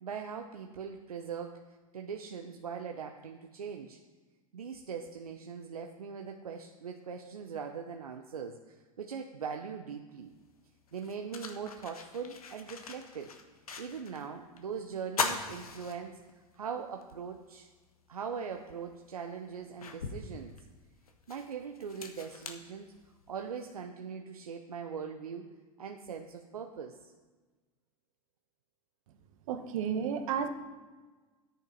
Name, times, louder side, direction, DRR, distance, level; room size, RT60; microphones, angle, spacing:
voice 1, 0.0-1.6 1.9-4.0 4.5-10.3 10.9-13.3 13.8-17.7 18.1-20.5 21.3-22.9 23.3-25.5 25.8-27.1, right 6 dB, 90° right, 4 dB, 0.7 m, -41 dB
sound 1, 10.3-10.4 10.9-14.3 14.6-14.7 15.1-16.5 17.0-17.1 18.5-18.6 19.2-23.4, left 5 dB, 85° left, 1.2 m, -40 dB
voice 2, 29.5-30.5, right 7 dB, 65° right, 7 dB, 1.2 m, -32 dB
10.5 x 8.9 x 5.3 m, 1.3 s
hypercardioid pair, 90°, 18 cm